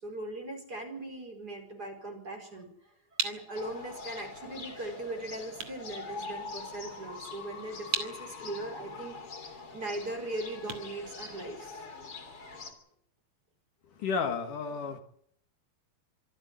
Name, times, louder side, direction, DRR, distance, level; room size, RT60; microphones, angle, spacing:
voice 1, 0.0-11.8, right 2 dB, 25° right, 3 dB, 5.2 m, -40 dB
sound 1, 2.6-11.9, right 6 dB, 50° right, 3.3 m, -41 dB
sound 2, 3.5-12.7, left 4 dB, 40° left, 4.1 m, -44 dB
voice 2, 13.9-15.0, left 5 dB, 65° left, 6 dB, 3.2 m, -32 dB
26.5 x 13.5 x 9.5 m, 0.66 s
omnidirectional pair, 4.1 m